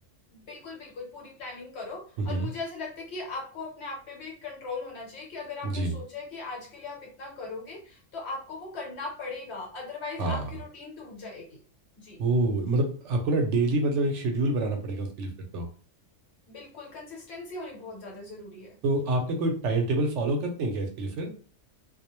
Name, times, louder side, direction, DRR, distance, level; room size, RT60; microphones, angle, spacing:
voice 1, 0.3-11.6 12.0-12.2 16.5-18.8, left 3 dB, 65° left, -1 dB, 1.1 m, -39 dB
voice 2, 2.2-2.5 5.6-6.0 10.2-10.5 12.2-15.7 18.8-21.3, right 2 dB, 75° right, 4 dB, 0.9 m, -27 dB
2.3 x 2.0 x 2.9 m, 0.42 s
omnidirectional pair, 1.3 m